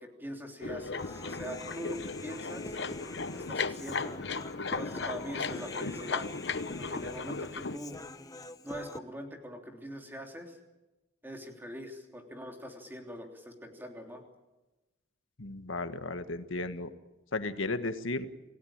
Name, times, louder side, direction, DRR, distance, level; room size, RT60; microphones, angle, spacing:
voice 1, 0.0-2.8 3.3-4.2 4.7-6.3 6.8-8.0 8.6-10.6 11.2-14.2, equal, 10° right, 3 dB, 3.3 m, -43 dB
sound 1, 0.6-7.8, left 4 dB, 60° left, 1.0 m, -36 dB
Human voice, 1.0-9.0, left 2 dB, 20° left, 1.0 m, -45 dB
voice 2, 15.4-16.9 17.3-18.3, left 2 dB, 90° left, 9 dB, 1.5 m, -34 dB
28.0 x 17.0 x 8.8 m, 1.1 s
head